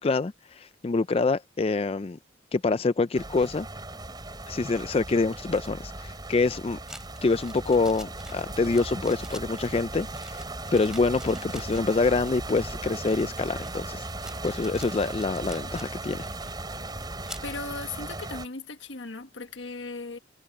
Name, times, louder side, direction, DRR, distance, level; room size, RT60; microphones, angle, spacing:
voice 1, 0.0-2.2 2.5-3.7 4.5-6.8 7.2-10.4 10.7-14.1 14.4-16.3, left 3 dB, 30° left, 0.4 m, -26 dB
sound 1, 3.1-18.5, right 2 dB, 20° right, 5.6 m, -37 dB
sound 2, 6.9-17.5, right 1 dB, 5° right, 2.8 m, -48 dB
voice 2, 17.4-20.2, left 3 dB, 80° left, 1.4 m, -37 dB
head